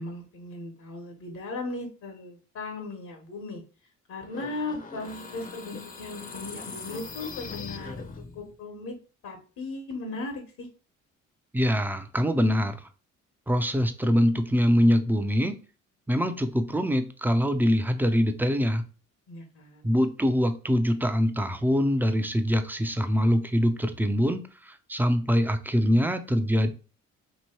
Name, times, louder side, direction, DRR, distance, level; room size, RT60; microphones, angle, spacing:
voice 1, 0.0-3.6 4.1-8.0 8.3-8.9 9.2-10.7 19.3-19.9, left 2 dB, 70° left, 3 dB, 1.2 m, -37 dB
sound 1, 4.3-8.5, left 4 dB, 30° left, 0.7 m, -41 dB
voice 2, 11.5-12.8 13.5-15.5 16.1-18.8 19.8-26.7, equal, 5° right, 8 dB, 0.5 m, -24 dB
3.0 x 2.7 x 4.4 m, 0.34 s
cardioid pair, 90°, 30 cm